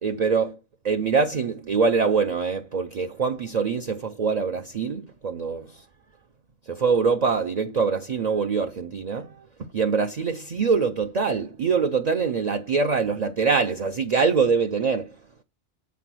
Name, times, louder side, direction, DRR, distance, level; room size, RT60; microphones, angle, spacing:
voice 1, 0.0-0.5 0.8-5.7 6.7-9.3 9.7-15.1, right 5 dB, 45° right, 0.6 m, -24 dB
8.4 x 4.0 x 6.0 m
omnidirectional pair, 1.2 m